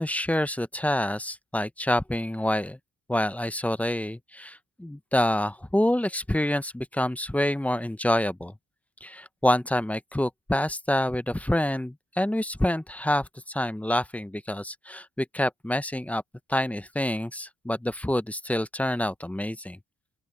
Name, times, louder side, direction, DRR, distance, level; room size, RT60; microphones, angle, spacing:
voice 1, 0.0-2.8 3.1-8.5 9.0-16.2 16.5-19.8, left 1 dB, 5° left, 0.7 m, -27 dB
open air
cardioid pair, 90°, 30 cm